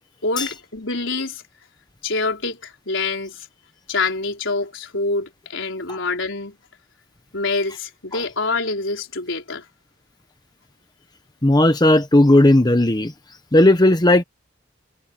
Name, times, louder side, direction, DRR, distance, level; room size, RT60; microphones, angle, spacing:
voice 1, 0.2-1.4 2.0-3.5 3.9-6.6 7.3-9.6, left 3 dB, 75° left, 4.7 m, -26 dB
voice 2, 11.4-13.1 13.5-14.2, left 1 dB, 20° left, 1.1 m, -14 dB
head